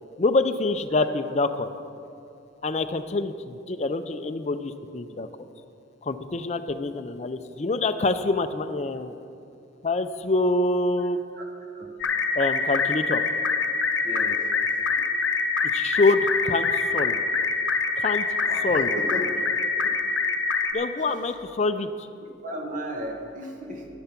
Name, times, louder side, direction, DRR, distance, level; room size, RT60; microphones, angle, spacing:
voice 1, 0.2-1.7 2.6-5.5 6.0-9.1 9.8-11.2 12.3-13.2 15.7-16.7 16.9-17.2 18.0-18.3 18.6-18.9 20.7-22.1, left 2 dB, 35° left, 8 dB, 0.4 m, -25 dB
sound 1, 12.0-20.7, left 4 dB, 70° left, 0.8 m, -25 dB
voice 2, 14.0-14.4 14.7-15.0 18.4-20.0 22.2-23.9, equal, 40° right, 2 dB, 1.3 m, -35 dB
11.0 x 10.5 x 5.9 m, 2.6 s
head